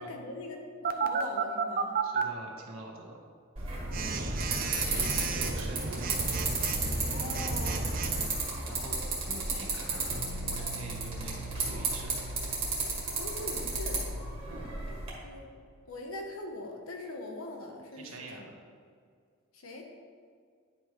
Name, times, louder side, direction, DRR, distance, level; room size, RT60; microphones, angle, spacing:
voice 1, 0.0-2.0 3.9-4.3 7.1-7.8 13.2-14.1 15.2-15.5 15.9-18.5 19.5-19.9, left 2 dB, 85° left, 2 dB, 1.1 m, -41 dB
Telephone, 0.8-2.2 3.9-8.3, right 4 dB, 40° right, 0.5 m, -32 dB
voice 2, 2.0-3.2 3.8-4.4 4.9-6.3 7.2-8.0 8.7-12.2 14.5-14.7 17.9-18.5, right 1 dB, 80° right, -1 dB, 1.4 m, -46 dB
sound 1, 3.6-15.1, right 3 dB, 25° right, 2.0 m, -33 dB
sound 2, 10.1-15.0, right 3 dB, 5° left, 0.9 m, -46 dB
10.5 x 5.4 x 3.2 m, 2.1 s
head